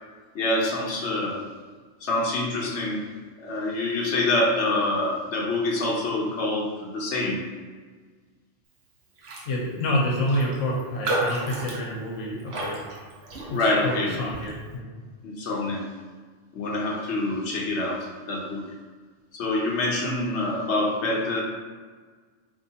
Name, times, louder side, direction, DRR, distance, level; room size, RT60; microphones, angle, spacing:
voice 1, 0.3-1.4 2.0-3.0 3.4-7.4 13.5-14.2 15.2-15.8 16.5-18.6 19.3-21.4, left 2 dB, 70° left, -2 dB, 1.1 m, -26 dB
Raindrop, 9.2-9.5 9.8-9.9 10.3-13.9 14.3-14.6, right 2 dB, 60° right, 1.0 m, -32 dB
voice 2, 9.4-12.8 13.5-14.9, left 1 dB, 90° left, -3 dB, 1.2 m, -28 dB
4.3 x 3.0 x 2.8 m, 1.5 s
omnidirectional pair, 1.3 m